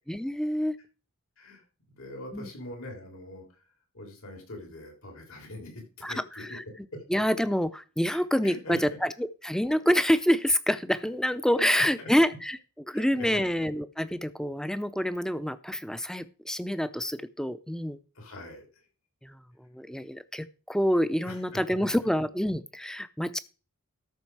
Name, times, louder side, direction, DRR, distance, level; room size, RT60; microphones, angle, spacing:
voice 1, 0.1-0.8 2.3-2.5 6.0-6.6 7.1-12.6 12.9-18.0 19.2-23.4, equal, 5° left, 14 dB, 0.5 m, -27 dB
voice 2, 2.0-3.4 3.9-6.6 6.9-7.0 8.1-8.9 11.6-12.1 12.9-13.5 18.2-18.7 21.2-21.9, left 1 dB, 75° left, 3 dB, 3.6 m, -42 dB
13.0 x 6.3 x 4.7 m, 0.35 s
head